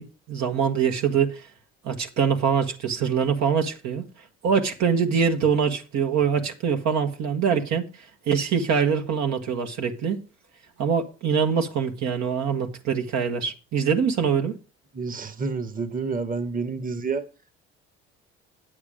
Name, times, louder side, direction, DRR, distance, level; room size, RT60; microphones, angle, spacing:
voice 1, 0.0-1.5 1.8-4.1 4.4-7.9 8.3-10.2 10.8-14.6, right 6 dB, 70° right, 1.4 m, -24 dB
voice 2, 14.9-17.3, right 4 dB, 30° right, 1.2 m, -29 dB
8.8 x 7.3 x 5.0 m
supercardioid pair, 70°, 29 cm